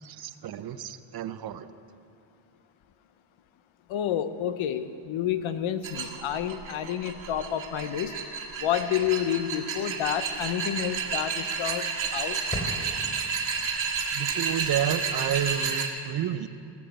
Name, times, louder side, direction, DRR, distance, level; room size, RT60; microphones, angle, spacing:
voice 1, 0.0-1.7 14.1-16.5, right 10 dB, 55° right, 13 dB, 0.6 m, -30 dB
voice 2, 3.9-8.1 8.6-12.4, left 10 dB, 75° left, 12 dB, 0.8 m, -29 dB
sound 1, 5.8-15.9, right 5 dB, 75° right, 1.8 m, -31 dB
sound 2, 8.7-14.4, left 1 dB, 20° left, 2.9 m, -43 dB
17.5 x 7.1 x 7.6 m, 2.7 s
cardioid pair, 145°, 47 cm